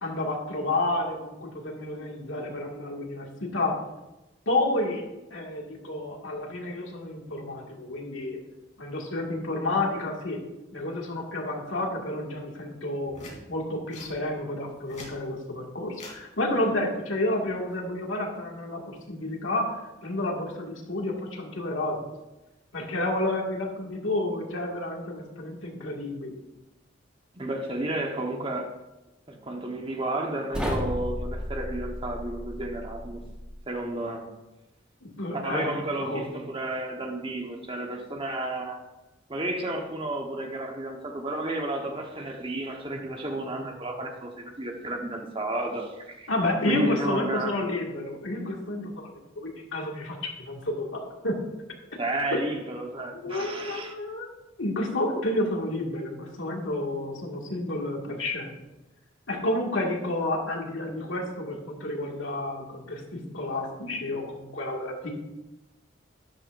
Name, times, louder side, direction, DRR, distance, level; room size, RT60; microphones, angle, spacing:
voice 1, 0.0-3.8 4.5-5.0 5.3-8.4 8.8-10.4 10.7-13.1 13.5-19.8 20.0-22.1 22.7-26.3 35.0-36.2 46.3-51.4 53.2-54.3 54.6-58.6 59.3-65.1, left 1 dB, 90° left, 0 dB, 2.2 m, -30 dB
sound 1, 13.1-13.4 13.9-14.1 14.7-15.2 15.9-16.2 17.5-17.8, left 2 dB, 40° left, 3.3 m, -44 dB
voice 2, 27.3-28.7 29.3-33.3 33.7-34.3 35.3-38.8 39.3-46.3 46.7-47.6 52.0-53.9, right 1 dB, 30° right, 2 dB, 1.3 m, -32 dB
sound 2, 30.5-33.6, equal, 5° right, 1.5 m, -33 dB
12.5 x 11.0 x 2.6 m, 1.0 s
head